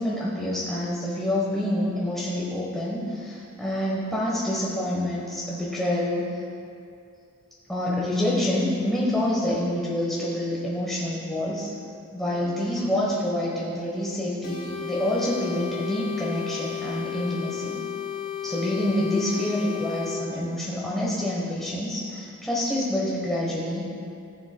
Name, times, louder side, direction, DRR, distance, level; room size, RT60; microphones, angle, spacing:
voice 1, 0.0-6.3 7.7-11.7 12.1-17.8 18.4-23.9, left 1 dB, ahead, -7 dB, 1.0 m, -27 dB
sound 1, 14.4-20.2, left 10 dB, 60° left, 1.6 m, -33 dB
14.5 x 7.0 x 2.2 m, 2.5 s
head